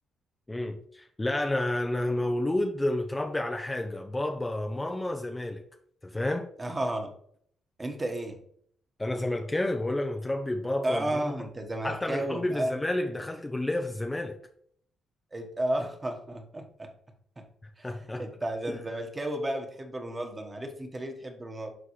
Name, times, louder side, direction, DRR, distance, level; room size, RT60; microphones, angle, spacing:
voice 1, 0.5-5.6 6.0-6.5 9.0-11.3 11.8-14.4 17.8-18.3, left 1 dB, 15° left, 0.7 m, -30 dB
voice 2, 6.6-7.1 7.8-8.4 10.8-12.7 15.3-16.9 17.4-17.5 17.8-21.7, right 1 dB, 20° right, 1.4 m, -33 dB
11.0 x 3.8 x 3.2 m
cardioid pair, 90°, 0 cm